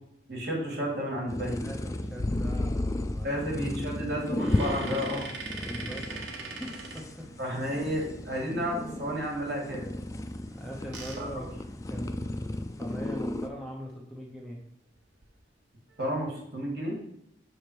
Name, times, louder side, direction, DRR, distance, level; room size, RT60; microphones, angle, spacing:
voice 1, 0.3-1.6 3.2-5.3 7.4-9.9 11.2-11.3 16.0-17.0, equal, 60° right, -2 dB, 1.9 m, -31 dB
sound 1, 1.3-13.5, left 1 dB, 20° left, 0.3 m, -34 dB
voice 2, 1.6-3.4 5.6-6.1 6.4-7.3 10.6-14.6, equal, ahead, -2 dB, 0.8 m, -41 dB
sound 2, 4.3-7.8 10.5-12.4 12.9-13.0 13.3-13.5 15.0-15.3 15.9-16.4, right 4 dB, 85° right, 1.0 m, -42 dB
6.3 x 3.4 x 4.6 m, 0.77 s
head